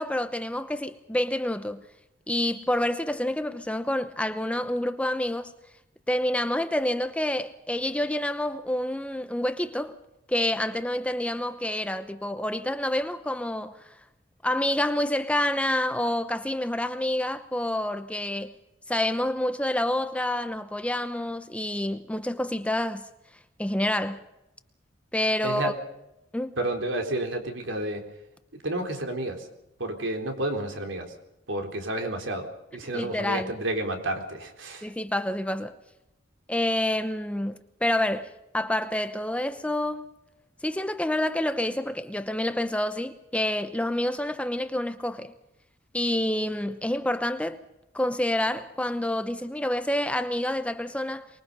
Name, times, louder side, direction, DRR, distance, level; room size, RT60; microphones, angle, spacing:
voice 1, 0.0-1.8 2.3-5.5 6.1-10.0 10.3-13.8 14.4-18.5 18.9-23.1 23.6-24.2 25.1-25.7 26.3-26.6 32.9-33.5 34.8-35.8 36.5-40.0 40.6-45.3 45.9-47.6 47.9-51.3, left 1 dB, 5° left, 0.8 m, -28 dB
voice 2, 25.4-25.8 26.6-28.1 28.6-29.5 29.8-31.1 31.5-34.9, right 1 dB, 70° right, 4.1 m, -31 dB
24.5 x 22.5 x 5.6 m
head